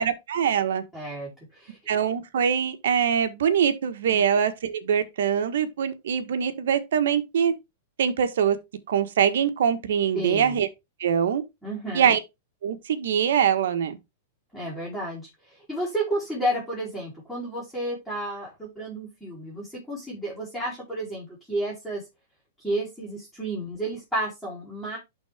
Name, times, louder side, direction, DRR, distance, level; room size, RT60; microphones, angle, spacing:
voice 1, 0.0-0.8 1.9-7.5 8.0-8.6 8.9-10.7 11.0-11.4 11.9-12.2 12.6-14.0, right 8 dB, 75° right, 1.4 m, -23 dB
voice 2, 0.9-1.8 4.1-4.2 10.1-10.6 11.6-12.1 14.5-22.0 22.6-25.0, right 1 dB, ahead, 4.5 m, -31 dB
11.5 x 4.1 x 3.5 m
hypercardioid pair, 145°, 0 cm